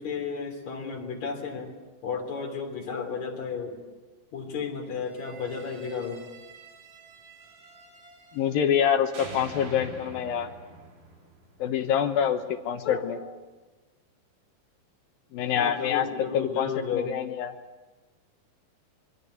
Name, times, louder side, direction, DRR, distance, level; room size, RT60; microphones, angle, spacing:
voice 1, 0.0-1.7 2.0-3.8 4.3-6.2 12.8-13.3 15.5-17.2, left 5 dB, 45° left, 3 dB, 4.6 m, -33 dB
sound 1, 5.0-8.8 9.1-12.2, right 3 dB, 45° right, 4.8 m, -46 dB
voice 2, 8.3-10.5 11.6-13.2 15.3-16.1 16.3-17.5, left 8 dB, 70° left, 8 dB, 2.7 m, -26 dB
26.5 x 23.0 x 8.3 m, 1.2 s
omnidirectional pair, 4.8 m